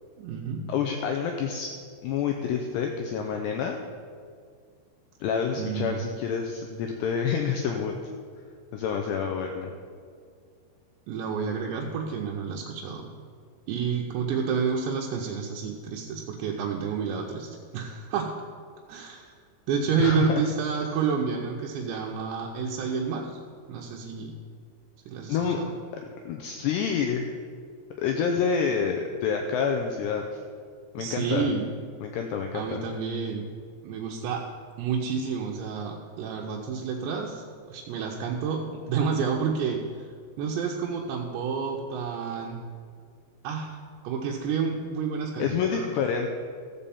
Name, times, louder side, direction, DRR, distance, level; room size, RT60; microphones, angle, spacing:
voice 1, 0.2-0.7 5.6-6.1 11.1-13.1 13.7-18.3 18.9-19.3 19.7-23.3 23.7-24.3 25.1-25.7 31.0-31.7 32.5-33.5 33.8-34.5 34.8-40.1 40.4-42.6 43.4-43.8 44.0-46.0, right 6 dB, 80° right, -1 dB, 2.7 m, -29 dB
voice 2, 0.7-3.8 5.2-7.9 8.7-9.7 20.0-20.4 25.3-25.6 26.3-27.3 28.0-30.4 30.9-31.5 32.0-32.8 45.4-46.3, left 6 dB, 90° left, 3 dB, 2.4 m, -28 dB
14.5 x 5.6 x 7.1 m, 2.1 s
omnidirectional pair, 5.7 m